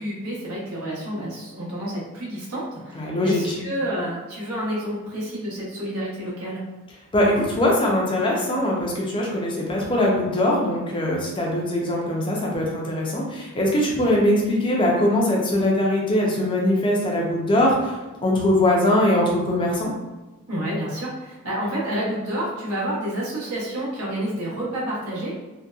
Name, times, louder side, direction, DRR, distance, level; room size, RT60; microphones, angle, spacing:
voice 1, 0.0-6.6 20.5-25.3, equal, 80° right, -7 dB, 0.9 m, -29 dB
voice 2, 2.9-3.6 7.1-19.9, left 1 dB, 20° left, -2 dB, 0.4 m, -21 dB
2.7 x 2.1 x 2.3 m, 1.1 s
head